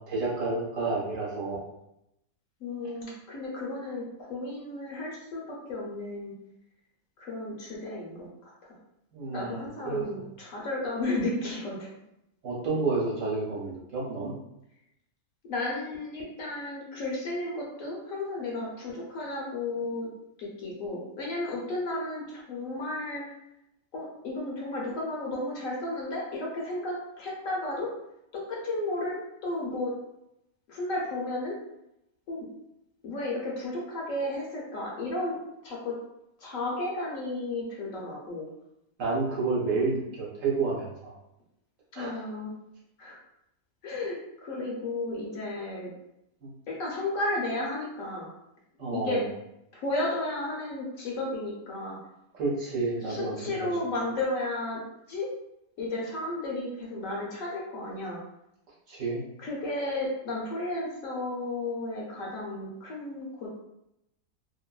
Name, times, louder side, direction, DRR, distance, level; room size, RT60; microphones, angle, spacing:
voice 1, 0.0-1.6 9.1-10.2 12.4-14.3 39.0-41.1 41.9-42.2 46.4-46.5 48.8-49.2 52.3-53.7 58.9-59.2, right 3 dB, 60° right, -5 dB, 1.1 m, -30 dB
voice 2, 2.6-6.3 7.2-8.8 9.3-11.9 15.5-20.1 20.4-23.2 23.9-27.9 28.3-29.9 30.7-31.6 32.3-32.5 33.0-35.4 35.6-36.0 36.4-38.5 41.9-42.5 43.0-43.2 43.8-45.9 46.7-48.3 48.9-49.2 49.7-52.0 53.1-54.8 55.1-55.3 55.8-58.2 59.4-63.6, left 2 dB, 65° left, -3 dB, 0.9 m, -33 dB
2.7 x 2.5 x 2.3 m, 0.84 s
omnidirectional pair, 1.6 m